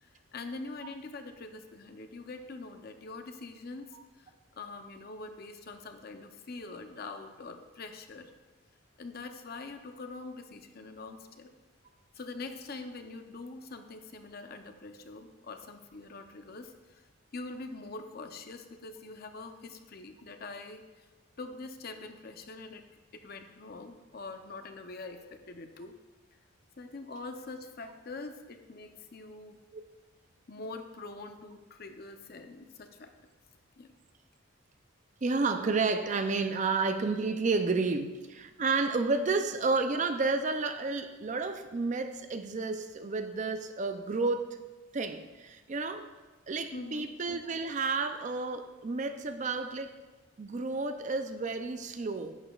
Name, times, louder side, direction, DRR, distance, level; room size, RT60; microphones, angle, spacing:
voice 1, 0.0-8.3 9.0-11.5 12.2-17.0 17.3-21.1 21.4-22.8 23.1-26.0 26.8-29.6 30.5-33.1 33.8-33.9 46.7-47.1, left 3 dB, 50° left, 7 dB, 0.6 m, -44 dB
voice 2, 35.2-44.6 44.9-46.1 46.5-50.0 50.4-52.4, right 3 dB, 35° right, 8 dB, 0.4 m, -31 dB
11.0 x 8.8 x 2.4 m, 1.2 s
head